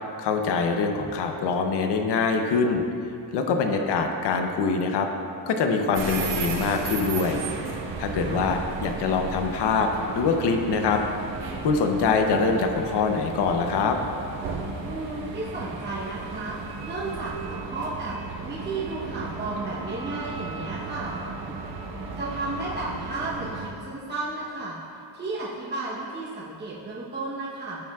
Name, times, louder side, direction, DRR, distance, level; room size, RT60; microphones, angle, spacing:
voice 1, 0.2-2.8 3.3-5.1 5.5-7.4 8.0-11.0 11.6-14.0, left 4 dB, 65° left, 4 dB, 0.9 m, -24 dB
voice 2, 3.7-4.1 8.2-8.6 14.8-16.6 16.8-18.2 18.4-21.1 21.5-21.6 22.2-24.8 25.1-27.8, right 2 dB, 25° right, -8 dB, 1.0 m, -33 dB
sound 1, 5.9-23.7, right 4 dB, 75° right, 1.3 m, -35 dB
16.0 x 7.2 x 2.4 m, 2.6 s
cardioid pair, 180°, 44 cm